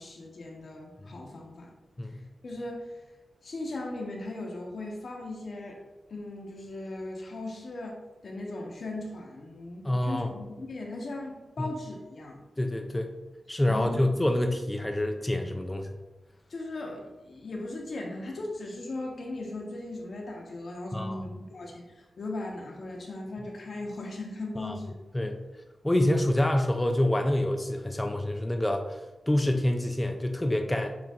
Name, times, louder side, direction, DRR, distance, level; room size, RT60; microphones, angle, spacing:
voice 1, 0.0-1.7 2.0-2.1 2.4-3.0 3.4-5.8 6.1-12.4 13.7-14.0 16.5-24.9, left 2 dB, 70° left, 0 dB, 0.8 m, -38 dB
voice 2, 9.8-10.3 11.6-11.7 12.6-13.1 13.5-16.0 20.9-21.2 24.6-24.8 25.1-25.4 25.8-31.0, left 1 dB, 15° left, 4 dB, 0.3 m, -27 dB
6.9 x 2.5 x 2.3 m, 1.2 s
cardioid pair, 60°, 0 cm